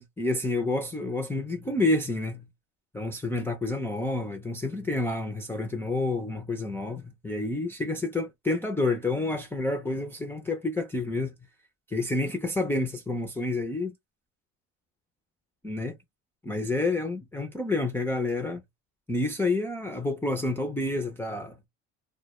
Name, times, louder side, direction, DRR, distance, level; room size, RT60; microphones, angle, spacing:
voice 1, 0.0-2.5 2.9-11.3 11.9-13.9 15.6-16.0 16.4-18.6 19.1-21.7, left 2 dB, 10° left, 0.3 m, -29 dB
2.1 x 2.1 x 2.9 m
cardioid pair, 115°, 32 cm